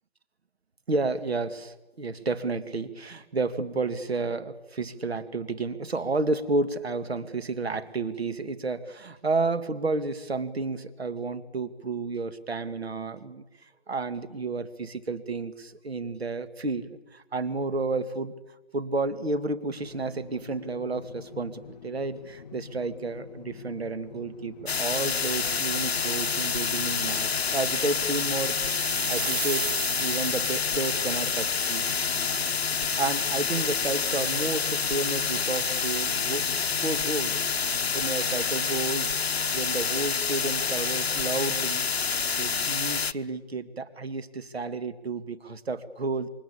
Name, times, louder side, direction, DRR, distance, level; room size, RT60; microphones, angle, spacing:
voice 1, 0.9-13.4 13.9-18.3 18.7-29.7 30.0-31.9 33.0-36.5 36.8-37.5 37.9-39.2 39.5-41.9 42.4-46.3, right 3 dB, 75° right, 10 dB, 2.3 m, -31 dB
sound 1, 19.8-38.4, left 7 dB, 40° left, 1.1 m, -46 dB
sound 2, 24.7-43.1, left 6 dB, 75° left, 0.9 m, -28 dB
sound 3, 28.2-31.2, right 5 dB, 55° right, 2.8 m, -35 dB
28.0 x 23.5 x 8.7 m, 1.1 s
figure-of-eight pair, 155°, 32 cm